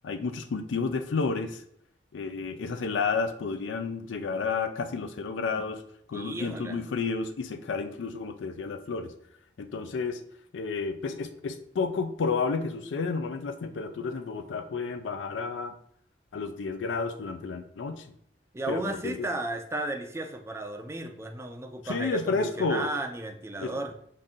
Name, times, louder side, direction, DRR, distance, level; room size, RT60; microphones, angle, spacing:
voice 1, 0.0-1.6 2.1-5.8 6.1-9.1 9.6-10.2 10.5-15.7 16.3-18.0 18.7-19.3 21.8-22.9 23.6-23.7, left 4 dB, 75° left, 8 dB, 0.4 m, -31 dB
voice 2, 6.1-6.9 18.5-23.9, right 2 dB, 15° right, 4 dB, 0.4 m, -34 dB
5.6 x 2.6 x 3.7 m, 0.69 s
head